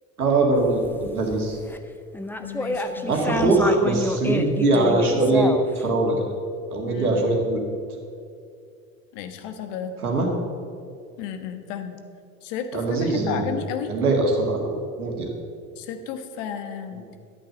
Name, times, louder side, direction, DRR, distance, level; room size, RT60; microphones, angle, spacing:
voice 1, 0.2-1.6 3.1-6.1 6.7-7.6 10.0-10.3 12.7-13.4 13.9-14.7 15.0-15.3, right 2 dB, 85° right, 0 dB, 2.1 m, -22 dB
sound 1, 0.6-1.8 2.1-5.8, left 1 dB, 5° left, 0.7 m, -29 dB
voice 2, 2.4-3.1 6.9-7.2 9.1-10.0 11.2-12.0 12.4-13.9 15.8-17.0, left 8 dB, 60° left, 8 dB, 1.4 m, -33 dB
11.5 x 8.7 x 6.5 m, 2.3 s
figure-of-eight pair, 70°, 43 cm